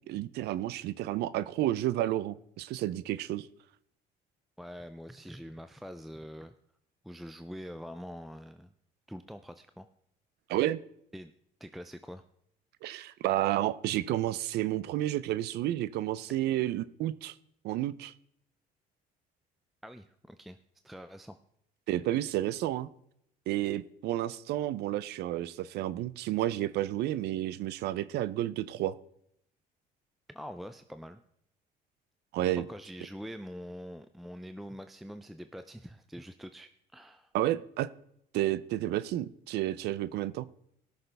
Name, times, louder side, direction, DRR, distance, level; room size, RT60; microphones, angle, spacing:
voice 1, 0.1-3.5 10.5-10.8 12.8-17.3 17.6-18.1 21.9-22.9 23.5-28.9 32.3-32.7 37.3-37.9 38.3-40.5, right 14 dB, 80° right, 18 dB, 0.5 m, -31 dB
voice 2, 4.6-6.5 7.0-8.7 9.1-9.9 11.1-11.3 11.6-12.2 19.8-20.6 20.8-21.4 30.3-31.2 32.7-37.3, equal, ahead, 10 dB, 0.4 m, -44 dB
17.5 x 6.6 x 3.4 m, 0.72 s
cardioid pair, 110°, 17 cm